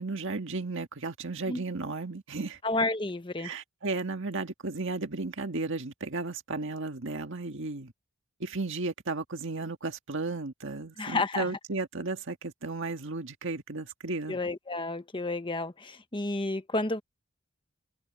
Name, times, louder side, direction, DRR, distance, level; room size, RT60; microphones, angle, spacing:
voice 1, 0.0-2.6 3.4-7.9 8.4-14.4, right 3 dB, 60° right, 1.7 m, -34 dB
voice 2, 2.6-3.5 11.0-11.5 14.3-17.0, left 2 dB, 25° left, 1.1 m, -31 dB
head